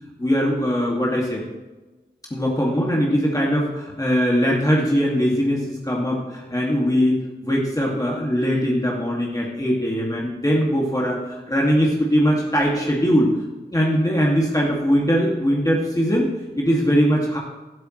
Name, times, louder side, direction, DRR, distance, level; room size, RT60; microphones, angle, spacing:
voice 1, 0.2-1.4 2.3-13.3 13.7-16.3 16.6-17.4, equal, 20° left, -3 dB, 2.4 m, -21 dB
12.5 x 12.0 x 3.3 m, 1.2 s
wide cardioid pair, 50°, 18 cm